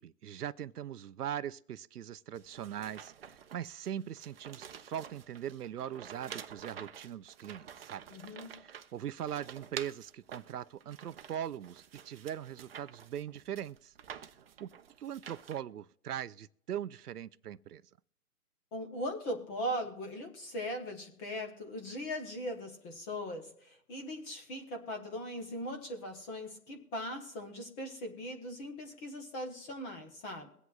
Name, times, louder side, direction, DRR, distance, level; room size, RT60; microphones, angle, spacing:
voice 1, 0.0-8.0 8.6-13.9 14.6-14.7 15.0-17.8, right 10 dB, 85° right, 0.6 m, -41 dB
sound 1, 2.3-15.6, right 8 dB, 40° right, 0.7 m, -49 dB
voice 2, 8.1-8.6 18.7-30.5, equal, 10° left, 0.8 m, -39 dB
22.5 x 8.2 x 2.4 m
hypercardioid pair, 150°, 45 cm